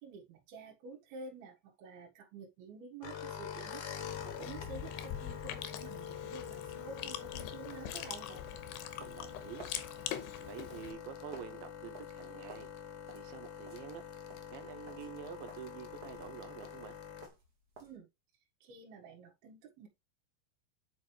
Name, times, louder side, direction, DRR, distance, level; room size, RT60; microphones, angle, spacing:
voice 1, 0.0-8.3 17.8-18.1 18.6-19.9, right 4 dB, 70° right, 3.6 m, -50 dB
sound 1, 3.0-17.3, left 8 dB, 65° left, 1.9 m, -46 dB
Chewing mastication, 4.0-10.9, left 11 dB, 85° left, 3.0 m, -44 dB
sound 2, 8.0-18.0, right 3 dB, 45° right, 1.3 m, -57 dB
voice 2, 9.0-9.7 10.4-12.7 13.1-14.1 14.5-17.0, right 10 dB, 90° right, 2.0 m, -48 dB
8.6 x 4.9 x 3.3 m
omnidirectional pair, 4.7 m